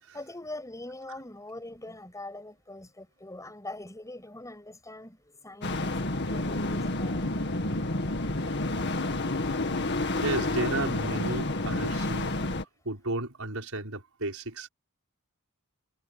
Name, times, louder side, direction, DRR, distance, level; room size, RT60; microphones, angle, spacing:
voice 1, 0.1-7.3, left 2 dB, 15° left, 6.9 m, -43 dB
sound 1, 5.6-12.6, left 2 dB, 55° left, 2.2 m, -29 dB
voice 2, 10.1-14.7, right 2 dB, 75° right, 5.9 m, -34 dB
head